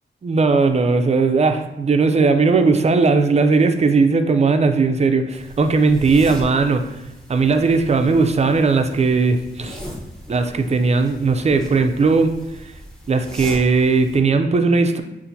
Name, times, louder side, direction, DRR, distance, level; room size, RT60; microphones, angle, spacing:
voice 1, 0.2-6.8 7.3-9.8 10.3-12.3 13.1-15.0, right 4 dB, 35° right, 7 dB, 0.4 m, -17 dB
sound 1, 5.3-14.2, equal, 5° left, 0.8 m, -38 dB
6.9 x 2.5 x 2.6 m, 0.97 s
wide cardioid pair, 95°, 20 cm